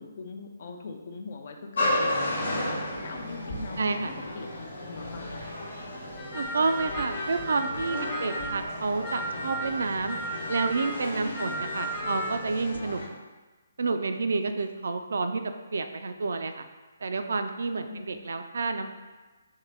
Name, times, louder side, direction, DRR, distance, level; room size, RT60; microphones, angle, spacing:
voice 1, 0.0-5.3 7.9-8.5 11.0-11.6 17.9-18.5 18.8-18.9, left 4 dB, 55° left, 4 dB, 0.5 m, -41 dB
sound 1, 1.8-13.1, left 1 dB, 75° left, 1.0 m, -34 dB
voice 2, 3.8-4.1 6.3-10.2 10.5-13.0 13.8-15.4 15.7-16.7 17.0-18.9, right 3 dB, 70° right, 7 dB, 0.3 m, -29 dB
sound 2, 6.2-8.8 9.0-11.1 11.3-12.3, right 1 dB, 15° left, 0.8 m, -35 dB
3.6 x 3.2 x 3.3 m, 1.3 s
figure-of-eight pair, 145°, 0 cm